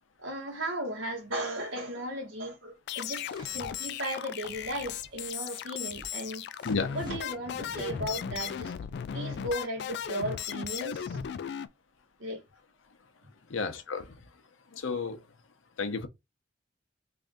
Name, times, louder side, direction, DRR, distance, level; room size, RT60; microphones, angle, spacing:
voice 1, 0.2-6.4 6.9-8.7 9.1-11.2 12.2-12.4, right 1 dB, 80° right, 1.4 m, -36 dB
sound 1, 2.9-11.7, left 8 dB, 60° left, 0.3 m, -37 dB
sound 2, 3.2-6.1 6.6-8.6, equal, 20° right, 0.9 m, -50 dB
voice 2, 13.5-14.2 14.7-15.2 15.8-16.1, left 4 dB, 80° left, 0.7 m, -32 dB
3.3 x 2.6 x 3.6 m
head